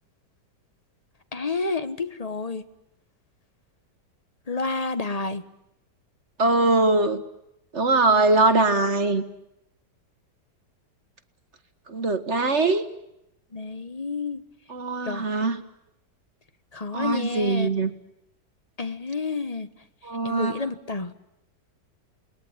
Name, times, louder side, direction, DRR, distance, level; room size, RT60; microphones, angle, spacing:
voice 1, 1.3-2.6 4.5-5.4 8.4-8.5 13.5-14.4 15.0-15.3 16.7-17.8 18.8-19.7 20.2-21.1, left 4 dB, 25° left, 11 dB, 1.2 m, -30 dB
voice 2, 6.4-7.2 7.7-9.2 11.9-12.8 14.7-15.6 16.9-17.9 20.0-20.6, right 3 dB, 40° right, 9 dB, 1.8 m, -22 dB
29.0 x 21.0 x 9.8 m, 0.85 s
omnidirectional pair, 1.9 m